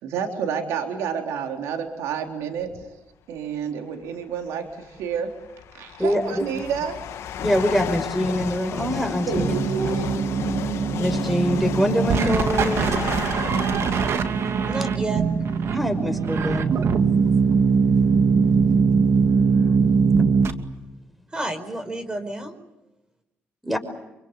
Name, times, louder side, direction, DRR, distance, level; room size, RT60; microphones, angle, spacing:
voice 1, 0.0-3.0 3.3-5.4 5.7-7.1 9.3-10.2, right 7 dB, 85° right, 4 dB, 3.6 m, -29 dB
sound 1, 2.6-2.9 4.0-4.1 4.9-16.3 16.9-17.1 17.9-18.0 18.2-19.8, left 9 dB, 75° left, 1.8 m, -33 dB
voice 2, 6.0-6.5 7.4-9.5 11.0-12.8 15.7-16.7 23.6-23.8, equal, ahead, 8 dB, 5.7 m, -24 dB
sound 2, 9.4-20.5, right 5 dB, 65° right, 2.5 m, -21 dB
voice 3, 14.5-15.2 21.3-22.5, right 2 dB, 20° right, 6 dB, 5.1 m, -30 dB
27.5 x 25.0 x 8.5 m, 0.95 s
supercardioid pair, 70°, 5 cm